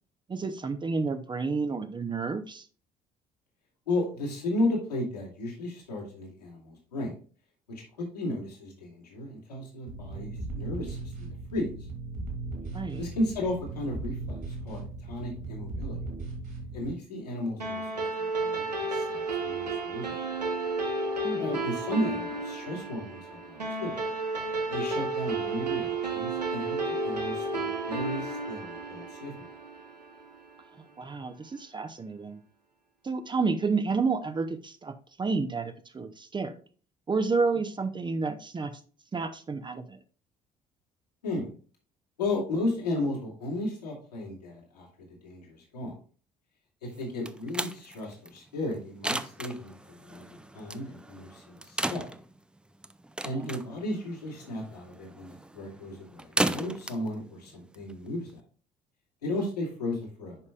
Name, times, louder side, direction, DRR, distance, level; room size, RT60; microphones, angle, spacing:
voice 1, 0.3-2.7 12.7-13.0 21.2-21.6 31.0-32.4 33.0-36.6 37.1-38.7 39.1-40.0 53.3-53.6, right 4 dB, 20° right, 9 dB, 0.7 m, -30 dB
voice 2, 3.9-7.1 8.0-11.7 13.0-16.0 16.7-20.2 21.4-24.0 24.7-29.3 41.2-41.5 42.2-44.9 45.2-45.9 46.8-52.0 53.2-58.4 59.2-60.4, left 1 dB, 80° left, -4 dB, 2.4 m, -34 dB
sound 1, 9.9-16.9, right 3 dB, 50° right, 3.1 m, -37 dB
sound 2, 17.6-30.3, right 3 dB, 85° right, 0.8 m, -32 dB
sound 3, 46.9-58.4, right 1 dB, 5° right, 0.4 m, -36 dB
9.8 x 5.4 x 2.4 m, 0.39 s
figure-of-eight pair, 50°, 21 cm